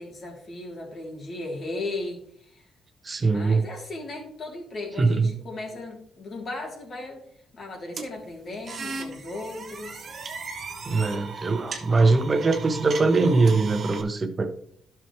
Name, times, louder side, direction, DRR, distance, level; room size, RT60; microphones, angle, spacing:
voice 1, 0.0-2.6 3.3-7.2 7.5-10.1, left 2 dB, 45° left, -1 dB, 3.4 m, -36 dB
voice 2, 3.0-3.6 5.0-5.3 10.8-14.5, right 3 dB, 30° right, 8 dB, 1.2 m, -22 dB
sound 1, 8.0-14.0, right 4 dB, 50° right, 1.6 m, -36 dB
12.0 x 6.1 x 3.3 m, 0.63 s
cardioid pair, 90°, 0 cm